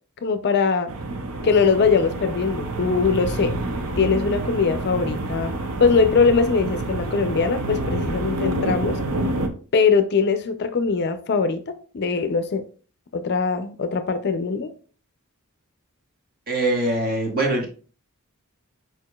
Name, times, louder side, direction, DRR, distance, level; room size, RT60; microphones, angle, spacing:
voice 1, 0.2-0.9 1.4-3.6 4.0-5.5 5.8-9.0 9.7-12.6 13.1-14.7, left 5 dB, 50° left, 0.4 m, -21 dB
sound 1, 0.9-9.5, right 2 dB, 70° right, 0.6 m, -28 dB
voice 2, 16.5-17.7, right 2 dB, 40° right, 1.3 m, -22 dB
4.7 x 4.5 x 2.3 m
head